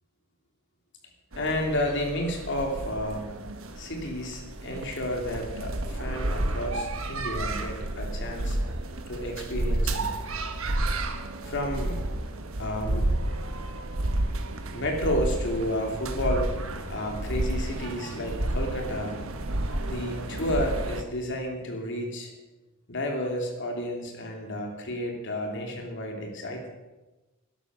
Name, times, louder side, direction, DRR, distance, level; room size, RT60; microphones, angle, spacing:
sound 1, 1.3-21.0, right 1 dB, 75° right, 1.3 m, -31 dB
voice 1, 1.4-3.3 3.8-8.6 9.1-10.1 11.5-12.0 12.6-13.1 14.7-16.5 16.9-19.2 19.8-22.3 22.9-26.7, left 1 dB, 55° left, 2 dB, 2.8 m, -31 dB
13.0 x 11.0 x 6.2 m, 1.1 s
head